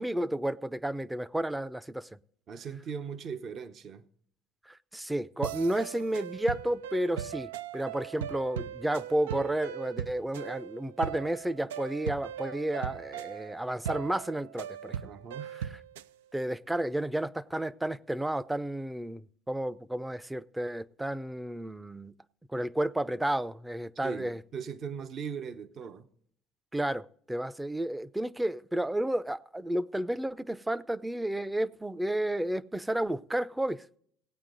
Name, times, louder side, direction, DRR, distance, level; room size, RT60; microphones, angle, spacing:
voice 1, 0.0-2.1 4.7-15.1 16.3-22.2 22.5-24.4 26.7-34.0, right 1 dB, 10° right, 0.5 m, -32 dB
voice 2, 2.5-4.1 15.0-15.5 24.0-26.1, right 6 dB, 50° right, 0.9 m, -39 dB
sound 1, 5.4-16.1, right 10 dB, 90° right, 0.3 m, -39 dB
16.5 x 8.9 x 3.8 m
hypercardioid pair, 75°, 0 cm